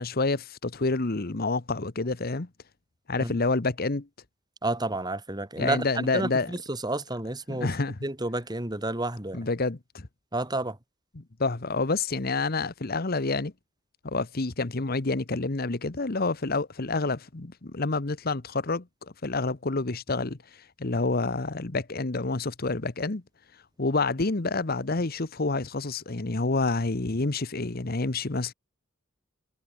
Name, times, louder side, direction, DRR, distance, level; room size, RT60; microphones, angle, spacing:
voice 1, 0.0-2.5 3.1-4.1 5.6-6.5 7.5-8.0 9.3-10.1 11.1-13.5 14.0-18.8 19.2-23.2 23.8-28.5, left 3 dB, 50° left, 1.1 m, -28 dB
voice 2, 4.6-7.7 8.0-9.4 10.3-10.8, right 2 dB, 20° right, 2.8 m, -30 dB
head